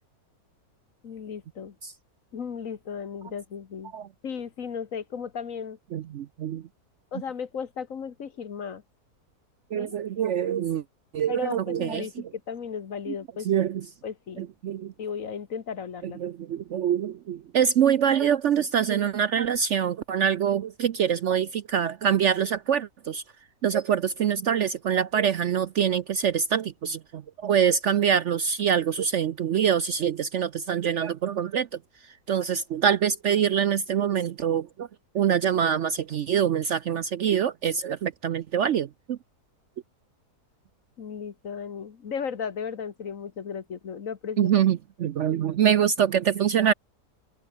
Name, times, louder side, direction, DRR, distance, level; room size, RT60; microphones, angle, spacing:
voice 1, 1.0-1.7 2.3-3.9 4.2-5.8 7.1-8.8 9.7-9.9 11.3-13.5 14.0-14.4 15.0-16.2 41.0-44.5, left 6 dB, 55° left, 1.7 m, -35 dB
voice 2, 5.9-6.6 9.7-10.8 11.1-12.1 13.1-13.2 13.4-13.9 14.4-14.9 16.0-23.2 23.6-34.9 35.1-39.2 44.4-46.7, right 8 dB, 60° right, 0.8 m, -25 dB
omnidirectional pair, 1.7 m